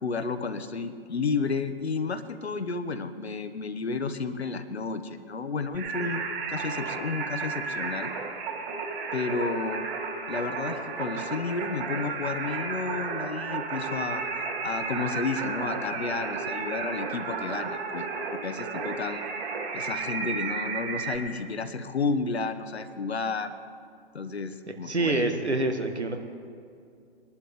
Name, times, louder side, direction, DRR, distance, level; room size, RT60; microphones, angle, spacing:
voice 1, 0.0-8.1 9.1-9.8 10.3-14.2 14.6-19.2 19.7-23.5 24.1-25.3, left 4 dB, 70° left, 10 dB, 1.0 m, -32 dB
Singing, 5.7-21.2, right 5 dB, 40° right, 3.8 m, -33 dB
voice 2, 24.7-26.2, right 2 dB, 85° right, 5 dB, 1.4 m, -27 dB
22.0 x 11.5 x 3.5 m, 2.4 s
figure-of-eight pair, 120°, 33 cm